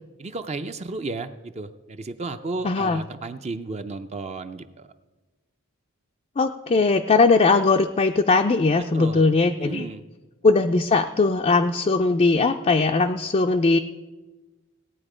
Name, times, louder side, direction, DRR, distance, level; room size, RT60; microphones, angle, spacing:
voice 1, 0.2-4.9 8.9-9.3 9.6-10.0, right 3 dB, 30° right, 9 dB, 0.5 m, -33 dB
voice 2, 2.6-3.0 6.4-9.9 10.4-13.8, left 3 dB, 30° left, 4 dB, 0.4 m, -20 dB
17.0 x 8.9 x 5.0 m, 1.2 s
head